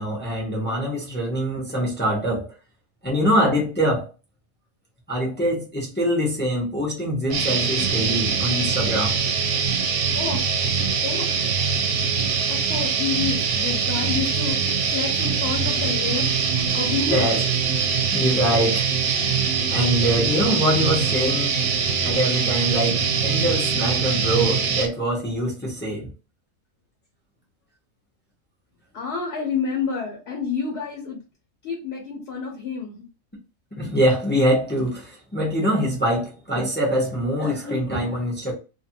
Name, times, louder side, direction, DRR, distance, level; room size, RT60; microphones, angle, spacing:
voice 1, 0.0-2.5 3.0-4.1 5.1-9.2 17.1-17.4 18.1-18.9 19.4-21.6 22.0-26.1 33.8-38.5, equal, 10° left, 0.6 m, -24 dB
sound 1, 7.3-24.9, right 6 dB, 70° right, 0.9 m, -23 dB
voice 2, 10.1-10.5 11.0-11.3 12.5-14.6 14.9-16.3 16.7-17.3 28.9-31.2 31.6-33.1, left 5 dB, 55° left, 0.9 m, -29 dB
2.5 x 2.5 x 2.7 m
omnidirectional pair, 1.4 m